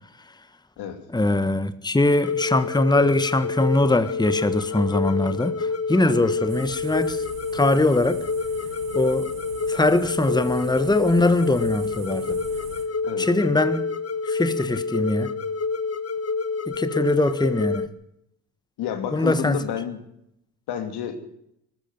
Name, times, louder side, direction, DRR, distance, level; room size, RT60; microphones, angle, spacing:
voice 1, 1.1-7.2 7.5-8.2 8.9-9.3 9.7-12.4 13.2-13.8 14.2-15.3 16.7-17.9 19.1-19.6, left 2 dB, 10° left, 1.6 m, -22 dB
sound 1, 2.2-17.9, left 4 dB, 35° left, 1.6 m, -28 dB
sound 2, 6.5-12.9, right 9 dB, 80° right, 2.4 m, -43 dB
voice 2, 18.8-20.0 20.7-21.2, left 8 dB, 70° left, 2.9 m, -30 dB
20.0 x 13.5 x 9.5 m
hypercardioid pair, 55°, 41 cm